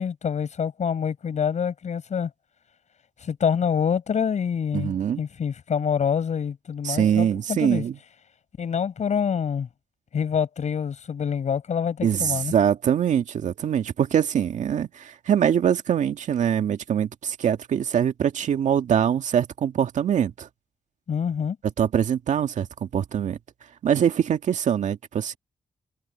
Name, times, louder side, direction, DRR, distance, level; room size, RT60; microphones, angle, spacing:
voice 1, 0.0-2.3 3.2-7.8 8.6-9.7 10.1-12.5 21.1-21.6, left 7 dB, 70° left, 5.0 m, -26 dB
voice 2, 4.7-5.2 6.8-8.0 12.0-20.5 21.8-23.4 23.8-25.4, right 9 dB, 75° right, 2.0 m, -23 dB
supercardioid pair, 45°, 13 cm